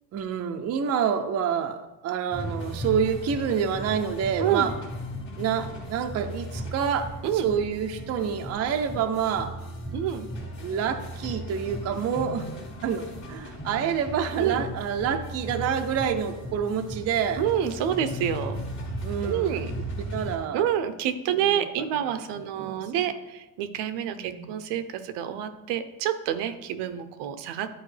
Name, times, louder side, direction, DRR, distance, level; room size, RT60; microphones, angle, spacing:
voice 1, 0.1-1.8 2.0-4.7 5.4-7.1 7.4-9.5 10.6-12.5 12.8-17.4 19.0-19.5 20.1-20.6 21.6-21.7 22.6-22.8 24.2-24.5, right 7 dB, 35° right, 6 dB, 0.5 m, -27 dB
sound 1, 2.3-20.4, equal, 25° left, 1.6 m, -36 dB
voice 2, 9.9-10.3 14.4-14.6 17.4-18.6 19.2-19.7 20.5-27.8, right 9 dB, 70° right, 10 dB, 0.7 m, -28 dB
10.0 x 4.4 x 3.3 m, 1.0 s
cardioid pair, 130°, 43 cm